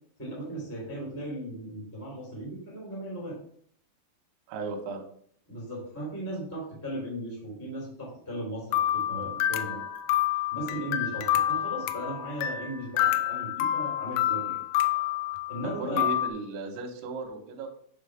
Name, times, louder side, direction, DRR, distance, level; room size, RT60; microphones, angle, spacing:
voice 1, 0.2-3.4 5.5-9.8 10.5-14.8 15.5-16.1, right 1 dB, 5° left, -5 dB, 1.3 m, -37 dB
voice 2, 4.5-5.1 15.6-17.7, right 4 dB, 75° right, 2 dB, 3.1 m, -35 dB
sound 1, 8.7-16.3, left 12 dB, 85° left, 3.1 m, -28 dB
8.0 x 3.2 x 4.9 m, 0.63 s
omnidirectional pair, 5.8 m